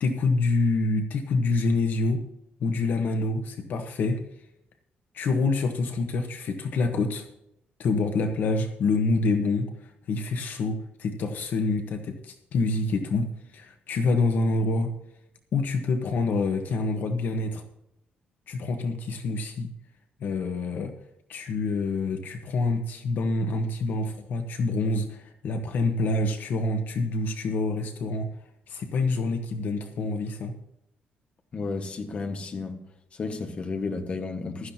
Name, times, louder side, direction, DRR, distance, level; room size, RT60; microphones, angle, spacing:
voice 1, 0.0-2.2 2.6-4.2 5.1-7.3 7.8-14.9 15.5-17.6 18.5-19.7 20.2-20.9 21.3-28.3 28.7-30.5, left 3 dB, 60° left, 6 dB, 1.2 m, -26 dB
voice 2, 31.5-32.8 33.1-34.7, left 4 dB, 35° left, 5 dB, 1.5 m, -32 dB
16.0 x 12.5 x 2.9 m, 0.83 s
cardioid pair, 160°, 4 cm